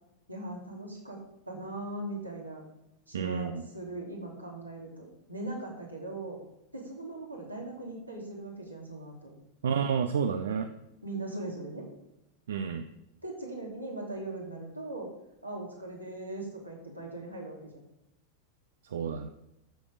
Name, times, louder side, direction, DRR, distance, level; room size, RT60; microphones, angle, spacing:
voice 1, 0.3-1.2 1.5-2.6 3.1-6.4 6.7-9.3 11.0-11.8 13.2-15.1 15.4-17.8, right 2 dB, 85° right, -2 dB, 2.7 m, -40 dB
voice 2, 3.1-3.6 9.6-10.7 12.5-12.8 18.8-19.3, right 7 dB, 65° right, 9 dB, 0.6 m, -30 dB
11.5 x 7.0 x 4.9 m, 0.88 s
figure-of-eight pair, 90°, 0 cm